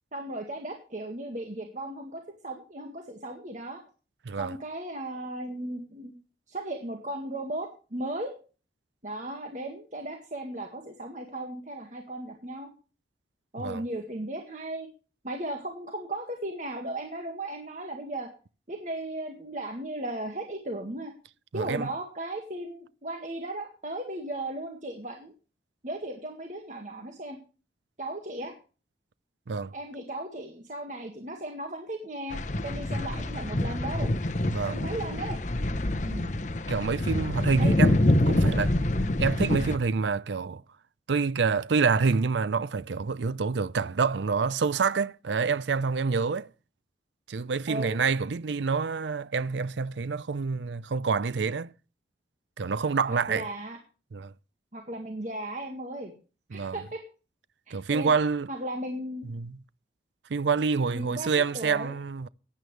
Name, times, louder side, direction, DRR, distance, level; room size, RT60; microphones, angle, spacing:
voice 1, 0.1-3.8 4.4-6.2 6.5-8.3 9.0-12.7 13.5-14.9 15.2-18.3 18.7-21.1 21.5-25.3 25.8-27.4 28.0-28.5 29.7-34.1 34.7-35.4 36.0-36.3 37.6-37.7 47.7-48.0 53.1-53.8 54.7-56.1 56.5-57.0 57.7-58.1 58.5-59.3 60.9-61.9, right 1 dB, 45° right, 1.9 m, -36 dB
voice 2, 4.3-4.6 13.6-13.8 21.5-21.9 29.5-29.7 34.5-34.8 36.7-38.0 38.3-38.8 39.2-40.6 41.1-46.5 47.3-51.7 52.6-53.5 54.1-54.3 56.5-56.8 57.7-58.5 59.2-59.6 60.3-62.3, right 5 dB, 85° right, 0.5 m, -27 dB
sound 1, 32.3-39.8, left 1 dB, 40° left, 0.9 m, -26 dB
15.5 x 10.5 x 3.3 m
head